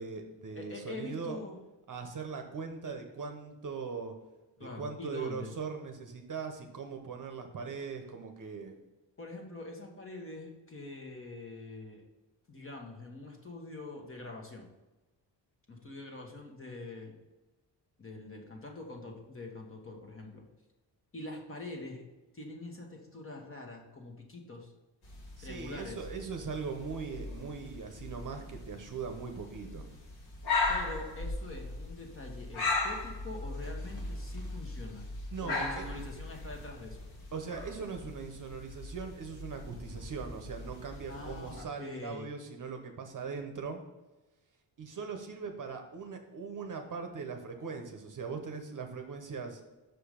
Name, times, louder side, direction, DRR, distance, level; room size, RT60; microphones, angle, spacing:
voice 1, 0.0-1.4 1.9-4.1 4.6-8.7 25.4-29.9 35.3-35.8 37.3-43.8 44.8-49.6, right 5 dB, 45° right, 5 dB, 0.9 m, -40 dB
voice 2, 0.5-1.6 4.6-5.5 9.2-12.0 12.5-14.7 15.7-17.2 18.0-20.4 21.1-22.0 22.3-24.7 25.4-26.1 30.7-35.0 35.4-37.1 41.1-42.3, left 2 dB, 30° left, 1 dB, 1.4 m, -44 dB
sound 1, 25.0-41.6, left 3 dB, 60° left, 1.7 m, -38 dB
6.3 x 5.0 x 5.1 m, 1.1 s
wide cardioid pair, 140°, 45 cm